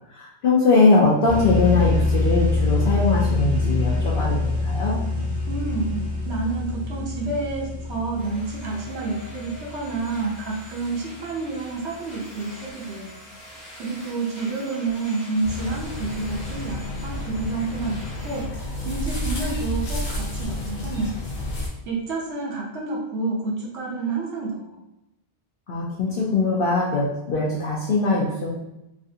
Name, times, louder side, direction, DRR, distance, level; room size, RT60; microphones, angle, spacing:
voice 1, 0.1-5.0 25.7-28.5, left 3 dB, 65° left, -4 dB, 0.7 m, -21 dB
sound 1, 1.3-10.8, left 2 dB, 10° right, 0.7 m, -25 dB
voice 2, 5.5-13.2 13.8-18.5 18.8-21.2 21.9-24.8, right 3 dB, 85° right, -3 dB, 0.9 m, -29 dB
sound 2, 8.2-18.4, equal, 45° left, 1.1 m, -44 dB
sound 3, 15.4-21.7, left 1 dB, 85° left, 1.1 m, -30 dB
3.2 x 2.4 x 2.7 m, 0.89 s
omnidirectional pair, 1.1 m